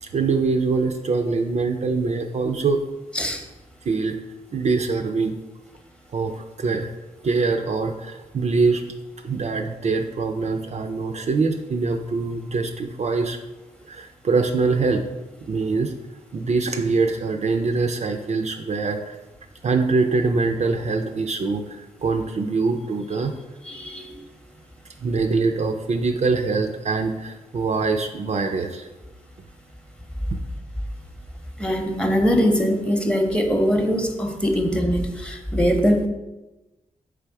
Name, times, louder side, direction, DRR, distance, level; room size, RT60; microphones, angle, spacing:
voice 1, 0.0-2.8 3.9-4.2 4.5-5.4 6.1-6.9 7.2-8.8 9.2-13.4 13.9-15.0 15.5-15.9 16.3-19.2 19.6-23.3 25.0-28.9 30.3-30.4, right 4 dB, 55° right, 5 dB, 0.4 m, -23 dB
voice 2, 3.1-3.5 23.6-24.2 31.6-36.1, equal, 5° left, 4 dB, 0.8 m, -22 dB
3.5 x 3.3 x 4.6 m, 1.0 s
supercardioid pair, 45°, 14 cm